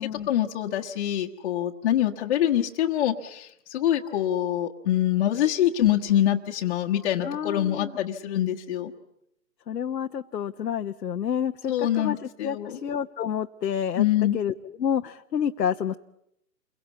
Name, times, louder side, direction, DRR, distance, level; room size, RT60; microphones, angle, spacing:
voice 1, 0.3-8.9 11.7-12.8 14.0-14.4, left 12 dB, 35° left, -1 dB, 1.3 m, -25 dB
voice 2, 7.2-7.9 9.7-14.0 14.3-16.0, left 8 dB, 80° left, 6 dB, 1.0 m, -29 dB
28.5 x 23.0 x 8.2 m, 0.80 s
hypercardioid pair, 140°, 49 cm